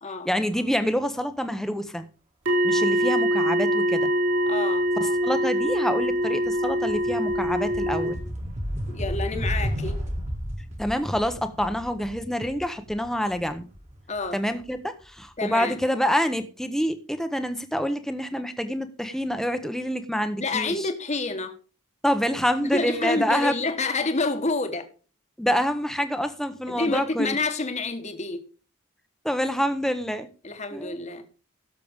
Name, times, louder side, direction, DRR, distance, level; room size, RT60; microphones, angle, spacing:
voice 1, 0.2-2.1 2.6-4.1 5.0-8.2 10.8-13.7 14.3-20.9 22.0-23.5 25.4-27.4 29.2-30.3 30.7-31.1, equal, ahead, 0.8 m, -27 dB
sound 1, 2.4-8.1, equal, 65° right, 4.8 m, -24 dB
voice 2, 4.5-4.9 8.9-10.0 14.1-14.4 15.4-15.8 20.4-21.5 22.6-24.9 26.7-28.4 30.4-31.2, left 3 dB, 35° left, 1.2 m, -28 dB
sound 2, 5.1-5.4 5.7-14.6, equal, 35° right, 1.9 m, -33 dB
17.0 x 6.8 x 3.5 m
head